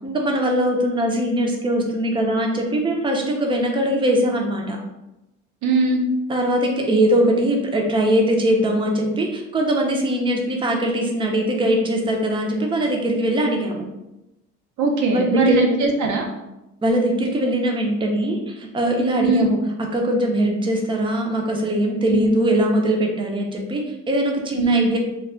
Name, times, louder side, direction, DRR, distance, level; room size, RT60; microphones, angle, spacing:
voice 1, 0.0-4.8 6.3-13.8 15.1-15.8 16.8-19.6 19.9-25.0, right 1 dB, 15° right, 1 dB, 0.5 m, -21 dB
voice 2, 5.6-6.0 14.8-16.3 19.2-19.5 22.1-22.3 24.5-24.9, right 3 dB, 70° right, 1 dB, 0.6 m, -20 dB
2.3 x 2.3 x 3.6 m, 0.93 s
cardioid pair, 90°, 30 cm